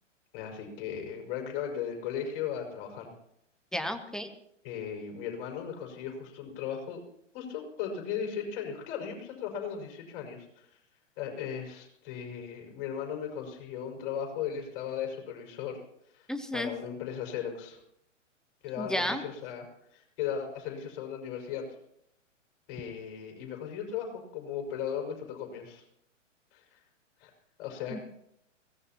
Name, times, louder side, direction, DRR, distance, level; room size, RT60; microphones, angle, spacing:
voice 1, 0.3-3.1 4.6-7.0 7.3-10.8 11.2-15.8 16.1-16.3 16.5-17.8 18.6-19.7 19.9-21.7 22.7-25.8 26.5-26.8 27.2-27.3 27.6-28.0, left 8 dB, 35° left, 2 dB, 5.7 m, -37 dB
voice 2, 3.7-4.3 16.3-16.7 18.8-19.2 27.9-28.0, equal, ahead, 8 dB, 0.8 m, -32 dB
22.5 x 18.0 x 3.0 m, 0.74 s
figure-of-eight pair, 115°, 38 cm